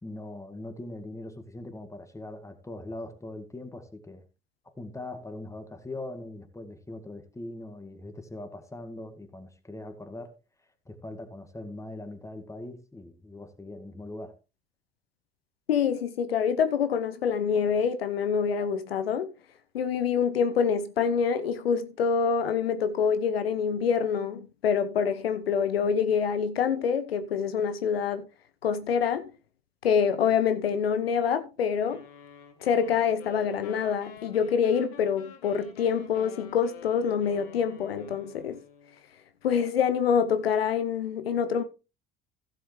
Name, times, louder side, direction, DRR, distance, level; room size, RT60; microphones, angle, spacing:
voice 1, 0.0-4.2 4.6-10.3 10.9-14.4, left 2 dB, 10° left, 2.0 m, -41 dB
voice 2, 15.7-19.3 19.7-28.3 28.6-29.3 29.8-32.0 32.6-38.6 39.4-41.6, left 7 dB, 80° left, 0.8 m, -26 dB
sound 1, 31.8-39.0, left 7 dB, 65° left, 2.2 m, -49 dB
15.0 x 7.7 x 3.2 m
figure-of-eight pair, 60°, 30 cm